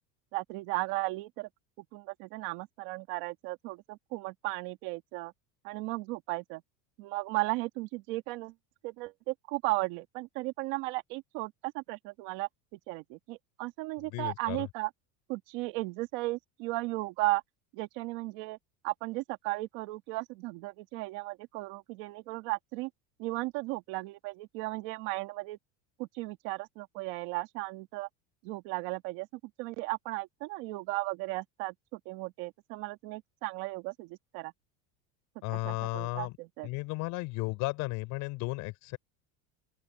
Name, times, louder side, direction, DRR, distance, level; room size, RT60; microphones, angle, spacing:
voice 1, 0.3-1.5 1.8-5.3 5.6-6.6 7.0-8.5 8.8-14.9 15.3-17.4 17.7-18.6 18.8-22.9 23.2-25.6 26.0-28.1 28.4-29.3 29.6-34.5 35.5-36.7, right 21 dB, 55° right, 2.0 m, -35 dB
voice 2, 14.0-14.7 35.4-36.3 36.6-39.0, left 23 dB, 50° left, 6.0 m, -34 dB
open air
cardioid pair, 175°, 37 cm